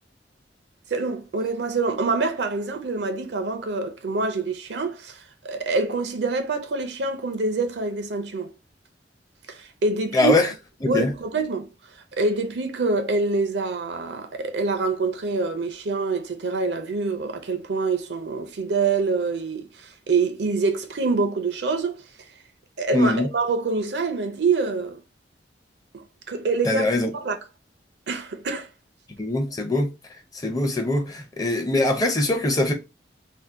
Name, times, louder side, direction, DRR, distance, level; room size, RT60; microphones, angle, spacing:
voice 1, 0.9-8.5 9.5-10.3 10.8-11.7 12.1-22.0 22.8-25.0 25.9-27.4 28.1-28.7, right 3 dB, 70° right, 0.5 m, -26 dB
voice 2, 10.1-10.5 10.9-11.1 22.9-23.3 26.7-27.1 29.2-29.9 30.4-32.7, left 2 dB, 20° left, 0.5 m, -22 dB
2.7 x 2.1 x 3.4 m
head